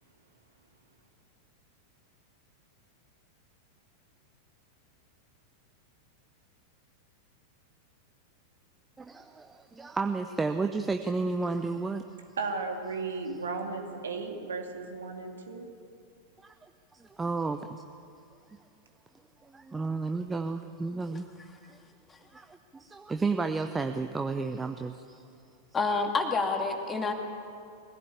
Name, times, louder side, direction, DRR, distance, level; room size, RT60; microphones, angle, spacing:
voice 1, 9.0-12.0 16.4-17.8 19.4-21.3 22.3-25.2, right 3 dB, 10° right, 7 dB, 0.8 m, -32 dB
voice 2, 12.4-15.7, right 4 dB, 65° right, 3 dB, 2.7 m, -35 dB
voice 3, 25.7-27.1, left 4 dB, 20° left, 3 dB, 2.5 m, -28 dB
23.0 x 16.5 x 8.7 m, 2.4 s
figure-of-eight pair, 90°, 0 cm